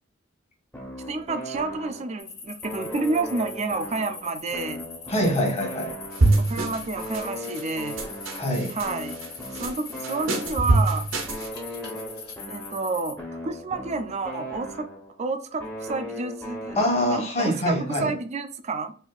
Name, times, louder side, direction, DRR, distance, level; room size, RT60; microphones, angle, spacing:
sound 1, 0.7-2.3 2.6-6.6 7.0-10.8 11.3-15.2 15.6-17.4, equal, 10° left, 0.7 m, -38 dB
voice 1, 1.1-4.8 6.5-8.0 8.7-9.2 9.6-11.1 12.5-14.9 15.2-16.8 17.1-19.0, right 3 dB, 35° right, 0.4 m, -30 dB
sound 2, 2.2-13.1, left 5 dB, 55° left, 1.4 m, -41 dB
voice 2, 5.1-5.9 8.4-8.7 16.8-18.1, equal, 35° left, 1.2 m, -24 dB
sound 3, 6.2-6.9 7.1-7.6 8.0-8.9 9.2-9.7 10.0-11.5, right 2 dB, 80° right, 0.8 m, -23 dB
4.2 x 2.5 x 2.3 m
head